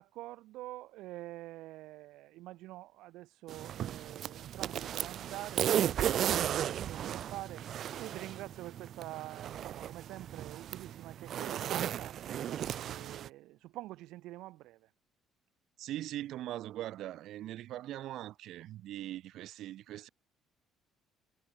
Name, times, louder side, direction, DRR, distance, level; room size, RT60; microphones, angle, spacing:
voice 1, 0.0-7.6 8.0-12.2 12.7-14.9, right 17 dB, 85° right, 5.4 m, -46 dB
sound 1, 3.5-13.3, right 10 dB, 50° right, 1.1 m, -35 dB
voice 2, 15.8-20.1, right 13 dB, 65° right, 1.7 m, -41 dB
cardioid pair, 145°, 0 cm